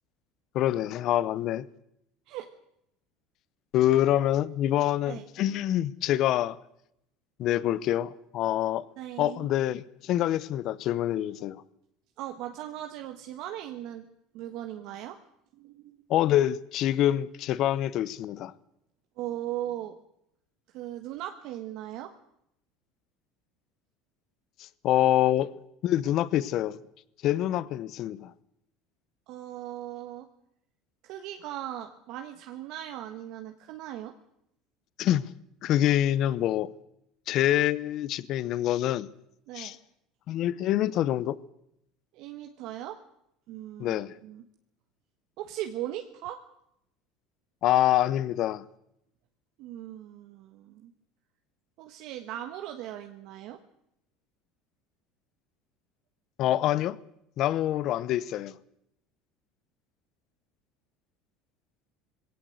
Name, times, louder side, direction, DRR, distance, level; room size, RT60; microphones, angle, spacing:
voice 1, 0.5-1.6 3.7-6.6 7.4-8.9 9.2-11.6 16.1-18.5 24.6-25.5 25.8-26.8 27.2-28.3 35.0-35.3 35.6-36.7 37.3-39.1 39.5-39.8 40.3-41.4 43.8-44.1 47.6-48.6 56.4-57.0 57.4-58.5, left 12 dB, 50° left, 0.9 m, -26 dB
voice 2, 9.0-9.5 12.2-14.0 14.3-15.2 15.5-16.0 19.2-20.0 20.7-22.1 29.3-30.3 31.0-34.1 39.5-39.8 42.1-43.0 43.5-44.4 45.4-46.4 49.6-50.9 51.8-53.6, right 12 dB, 60° right, 1.5 m, -38 dB
21.0 x 17.5 x 7.9 m
cardioid pair, 135°, 0 cm